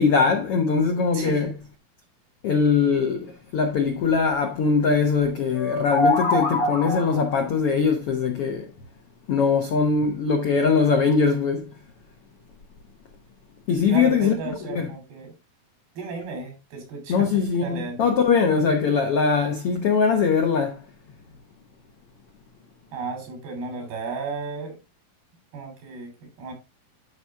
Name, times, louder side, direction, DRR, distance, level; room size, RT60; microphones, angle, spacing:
voice 1, 0.0-1.5 2.4-8.7 9.3-11.7 13.7-14.3 14.7-14.9 17.1-20.8, left 5 dB, 80° left, 1.3 m, -21 dB
voice 2, 1.1-1.5 13.9-15.3 15.9-18.1 22.9-24.8 25.5-26.5, right 4 dB, 85° right, 4.9 m, -34 dB
sound 1, 5.5-7.4, left 2 dB, 30° left, 3.1 m, -24 dB
11.5 x 5.2 x 3.4 m
omnidirectional pair, 4.3 m